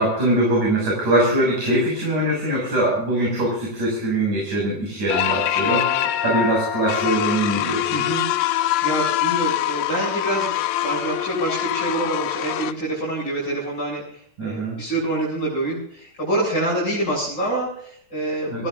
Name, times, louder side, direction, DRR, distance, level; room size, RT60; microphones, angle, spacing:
voice 1, 0.0-5.8 6.2-7.9 14.4-14.8 18.5-18.7, right 1 dB, 65° right, -2 dB, 8.2 m, -22 dB
sound 1, 5.1-12.7, left 13 dB, 80° left, 2.4 m, -24 dB
voice 2, 5.5-6.1 7.9-8.3 8.8-18.7, right 2 dB, 30° left, -5 dB, 7.9 m, -26 dB
26.5 x 16.5 x 2.6 m, 0.63 s
omnidirectional pair, 3.8 m